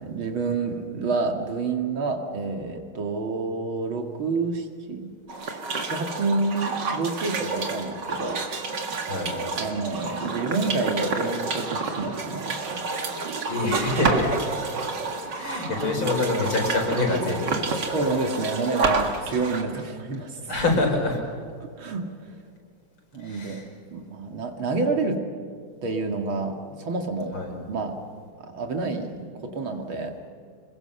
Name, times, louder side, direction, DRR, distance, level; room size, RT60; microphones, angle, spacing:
voice 1, 0.0-5.1 5.4-8.4 9.6-12.8 15.9-16.0 17.9-20.4 21.6-22.1 23.1-23.6 23.9-25.2 25.8-27.3 27.7-28.0 28.4-30.1, right 3 dB, 75° right, 4 dB, 3.0 m, -28 dB
sound 1, 5.3-19.6, right 3 dB, 55° right, 2.4 m, -29 dB
voice 2, 12.9-14.3 15.3-18.0 20.5-21.2 23.2-23.6 27.3-27.5, left 2 dB, 75° left, 1 dB, 5.8 m, -26 dB
26.5 x 22.0 x 6.9 m, 2.3 s
omnidirectional pair, 2.3 m